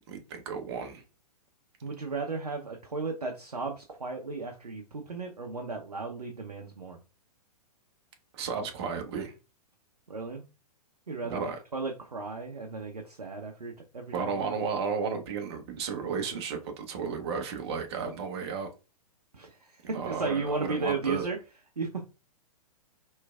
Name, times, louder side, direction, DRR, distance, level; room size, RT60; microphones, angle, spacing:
voice 1, 0.1-1.0 8.3-9.3 11.2-11.6 14.1-18.7 19.8-21.3, right 5 dB, 40° right, 0.8 m, -33 dB
voice 2, 1.8-7.0 10.1-10.4 11.1-11.4 11.7-14.6 19.3-21.4 21.8-22.0, right 4 dB, 80° right, 0.6 m, -35 dB
4.5 x 3.1 x 2.3 m
figure-of-eight pair, 110°, 20 cm